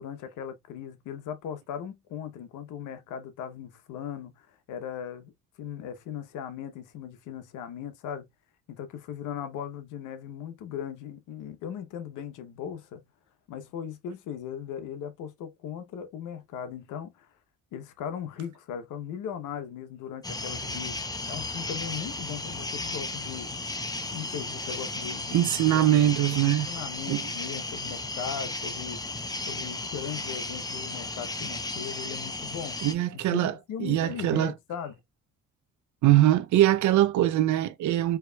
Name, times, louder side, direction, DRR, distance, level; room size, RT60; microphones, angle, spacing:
voice 1, 0.0-5.3 5.6-8.3 8.7-13.0 13.5-17.3 17.7-21.0 21.3-23.5 24.1-25.4 25.7-29.0 29.4-32.8 33.1-35.0, left 8 dB, 90° left, 0.9 m, -38 dB
sound 1, 20.2-32.9, left 2 dB, 15° left, 0.7 m, -34 dB
voice 2, 25.3-26.7 27.1-27.2 32.8-33.5 33.8-34.5 36.0-38.2, right 13 dB, 75° right, 0.6 m, -22 dB
4.7 x 2.9 x 2.2 m
cardioid pair, 90°, 30 cm